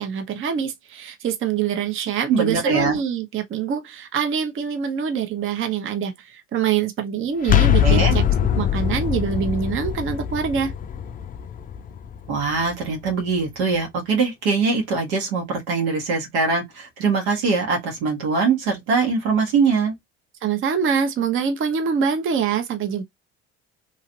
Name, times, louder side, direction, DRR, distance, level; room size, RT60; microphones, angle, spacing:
voice 1, 0.0-8.2 8.6-10.7 20.4-23.0, right 7 dB, 40° right, 0.7 m, -24 dB
voice 2, 2.3-3.0 7.8-8.2 12.3-20.0, right 4 dB, 85° right, 1.2 m, -22 dB
sound 1, 7.4-13.1, left 10 dB, 25° left, 0.4 m, -22 dB
2.9 x 2.4 x 2.7 m
supercardioid pair, 80°, 32 cm